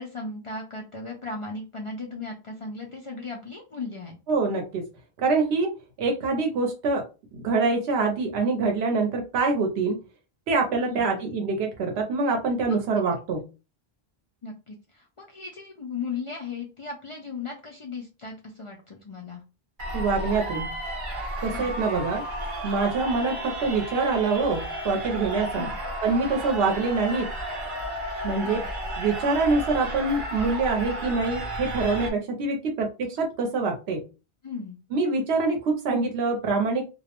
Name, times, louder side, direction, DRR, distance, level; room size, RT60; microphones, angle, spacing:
voice 1, 0.0-4.2 10.8-11.2 12.7-12.8 14.4-19.4 21.5-21.8 25.5-25.7 28.4-28.7 34.4-34.8, left 4 dB, 55° left, -1 dB, 0.3 m, -36 dB
voice 2, 4.3-4.9 5.2-5.7 6.0-7.0 7.3-10.0 10.5-13.4 19.9-20.7 21.4-22.2 22.6-25.7 26.0-27.3 28.2-28.6 29.0-34.0 34.9-36.9, right 3 dB, 85° right, 2 dB, 0.8 m, -25 dB
sound 1, 19.8-32.1, right 1 dB, 55° right, 0.9 m, -33 dB
2.4 x 2.0 x 2.8 m, 0.30 s
omnidirectional pair, 1.1 m